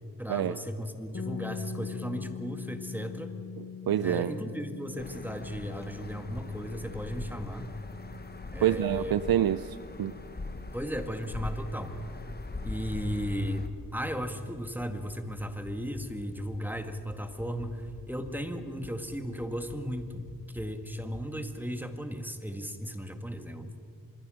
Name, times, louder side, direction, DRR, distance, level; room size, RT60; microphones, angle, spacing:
voice 1, 0.2-3.3 4.0-7.7 8.5-9.2 10.7-11.9 12.6-13.6 13.9-23.7, equal, 5° right, 7 dB, 1.9 m, -35 dB
sound 1, 1.1-10.9, left 8 dB, 45° left, 0.9 m, -44 dB
voice 2, 3.6-4.3 8.6-10.1, right 11 dB, 85° right, 14 dB, 0.6 m, -27 dB
sound 2, 5.0-13.7, left 2 dB, 25° left, 1.4 m, -41 dB
sound 3, 11.9-21.5, left 4 dB, 85° left, 2.2 m, -49 dB
25.5 x 22.0 x 6.4 m, 2.4 s
wide cardioid pair, 85°, 35 cm